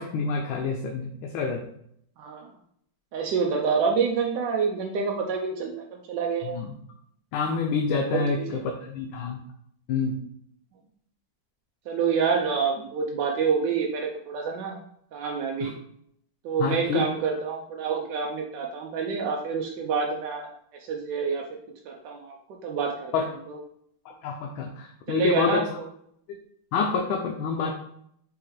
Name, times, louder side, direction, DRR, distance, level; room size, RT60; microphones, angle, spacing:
voice 1, 0.0-1.6 6.4-6.7 7.3-9.4 9.9-10.2 15.6-15.7 16.6-17.0 23.1-23.3 24.1-25.6 26.7-27.7, left 5 dB, 75° left, 2 dB, 1.3 m, -27 dB
voice 2, 2.2-2.5 3.1-5.7 6.1-6.5 8.1-8.6 11.9-14.8 15.1-15.7 16.4-20.5 20.9-21.4 21.9-22.3 22.6-23.1 23.5-23.6 25.1-25.9, right 5 dB, 75° right, 0 dB, 1.0 m, -27 dB
4.9 x 3.5 x 3.1 m, 0.69 s
omnidirectional pair, 2.4 m